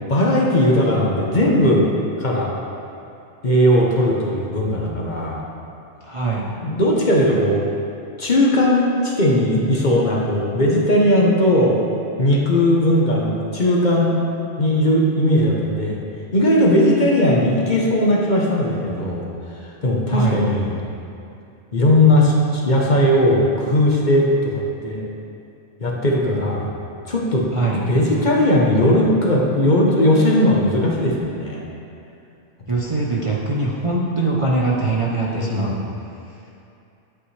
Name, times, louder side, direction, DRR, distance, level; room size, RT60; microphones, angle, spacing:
voice 1, 0.0-1.8 2.2-2.5 3.4-5.4 6.6-7.6 8.2-11.8 12.2-14.2 14.6-16.0 16.3-19.3 19.8-20.8 21.7-25.1 25.8-26.7 27.1-27.4 27.9-31.6 35.2-35.9, left 1 dB, 40° left, -3 dB, 1.1 m, -18 dB
voice 2, 6.0-6.5 20.1-20.4 27.5-27.8 32.7-35.8, right 3 dB, 30° right, -5 dB, 0.7 m, -22 dB
11.0 x 8.0 x 3.3 m, 2.6 s
omnidirectional pair, 1.2 m